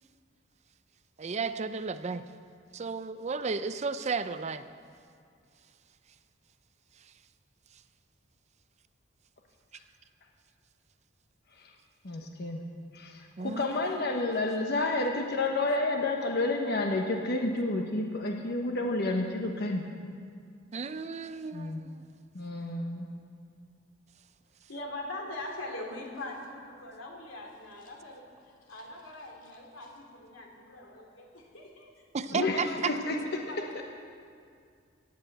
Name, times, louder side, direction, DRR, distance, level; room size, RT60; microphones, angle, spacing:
voice 1, 1.2-2.2 2.7-4.6 13.4-13.7 20.7-22.1 32.1-32.9, right 4 dB, 35° right, 12 dB, 0.5 m, -33 dB
voice 2, 12.0-12.6 12.9-19.8 21.5-21.8 22.3-23.1 32.3-33.2 33.7-33.8, left 2 dB, 55° left, 2 dB, 1.0 m, -30 dB
voice 3, 24.7-31.9 32.3-33.0 33.3-33.8, left 2 dB, 85° left, 0 dB, 2.6 m, -42 dB
17.0 x 8.2 x 7.8 m, 2.3 s
head